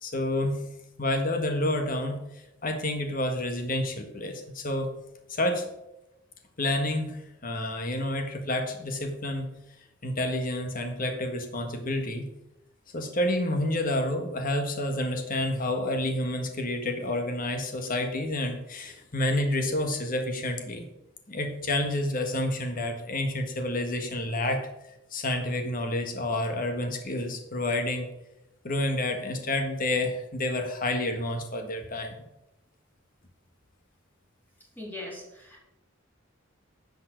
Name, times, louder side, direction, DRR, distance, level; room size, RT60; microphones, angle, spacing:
voice 1, 0.0-0.6 1.0-2.2 2.6-5.0 5.3-5.7 6.6-9.5 10.0-12.3 12.9-20.8 21.3-24.7 25.1-28.1 28.6-32.1, left 1 dB, 45° left, 5 dB, 1.6 m, -29 dB
voice 2, 34.8-35.6, left 1 dB, 10° left, -4 dB, 3.7 m, -40 dB
10.0 x 5.9 x 6.3 m, 0.90 s
head